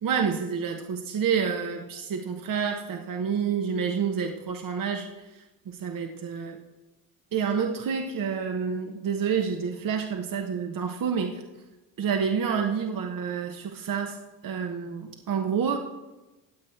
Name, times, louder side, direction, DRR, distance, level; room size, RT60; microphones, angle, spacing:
voice 1, 0.0-6.5 7.3-11.4 12.0-14.2 14.4-15.8, right 6 dB, 40° right, 3 dB, 1.3 m, -28 dB
17.5 x 7.7 x 4.5 m, 1.1 s
hypercardioid pair, 60°, 50 cm